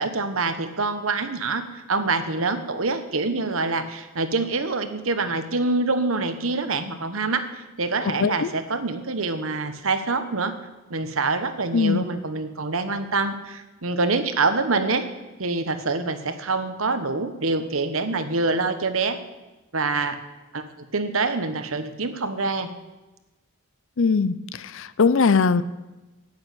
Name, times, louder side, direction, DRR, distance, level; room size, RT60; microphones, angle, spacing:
voice 1, 0.0-10.5 10.9-15.0 15.4-19.2 19.7-20.2 20.5-20.6 20.9-22.7, right 3 dB, 65° right, 10 dB, 1.2 m, -25 dB
voice 2, 8.2-8.5 11.7-12.0 24.0-24.4 24.7-25.6, left 5 dB, 60° left, 16 dB, 0.6 m, -20 dB
10.5 x 8.9 x 9.2 m, 1.1 s
head